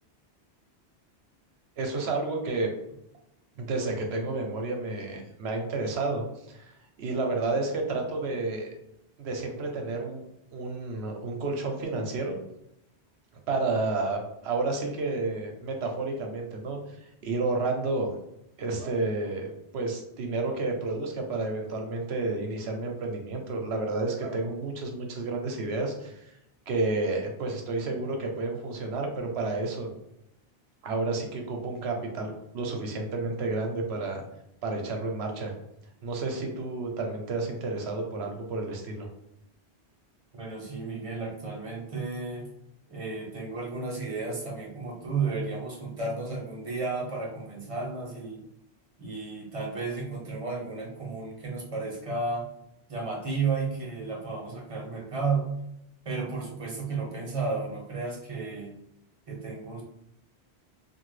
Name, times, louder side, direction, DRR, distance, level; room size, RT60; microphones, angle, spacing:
voice 1, 1.8-2.7 3.6-8.7 9.2-12.4 13.5-18.1 18.6-26.3 26.7-29.9 30.8-34.2 34.6-35.5 36.0-39.1, right 3 dB, 75° right, 2 dB, 0.9 m, -31 dB
voice 2, 40.3-42.5 42.9-48.4 49.0-52.5 52.9-55.5 56.0-58.8 59.3-59.8, right 4 dB, 35° right, -2 dB, 0.8 m, -33 dB
2.9 x 2.4 x 3.1 m, 0.82 s
omnidirectional pair, 1.1 m